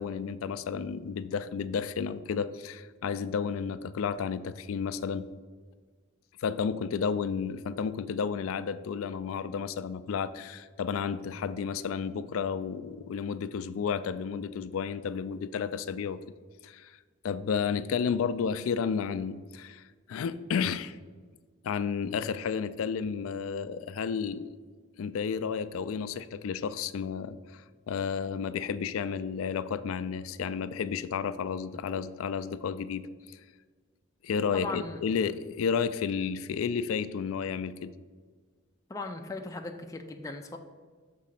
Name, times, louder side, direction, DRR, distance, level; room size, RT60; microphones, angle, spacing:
voice 1, 0.0-5.3 6.4-16.2 16.6-17.0 17.2-19.8 20.1-21.0 21.6-24.6 25.0-33.4 34.2-37.9, left 6 dB, 85° left, 14 dB, 0.3 m, -32 dB
voice 2, 34.5-35.0 38.9-40.6, left 3 dB, 15° left, 3 dB, 0.4 m, -38 dB
6.1 x 3.7 x 5.8 m, 1.5 s
head